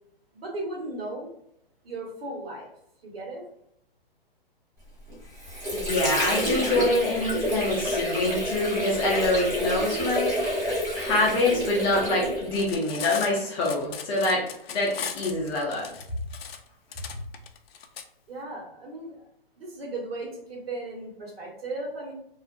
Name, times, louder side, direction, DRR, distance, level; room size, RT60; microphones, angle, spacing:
voice 1, 0.3-1.3 1.8-2.7 3.0-3.4 18.3-19.2 19.6-22.1, right 2 dB, 75° right, -3 dB, 1.4 m, -36 dB
Water / Sink (filling or washing), 5.1-12.7, equal, 10° right, 1.0 m, -28 dB
voice 2, 5.7-10.6 10.9-15.9 17.1-17.2, left 2 dB, 20° left, -4 dB, 0.4 m, -26 dB
Cutlery silverware, 12.4-18.0, left 7 dB, 75° left, 0.5 m, -37 dB
2.5 x 2.2 x 2.4 m, 0.73 s
hypercardioid pair, 135°, 30 cm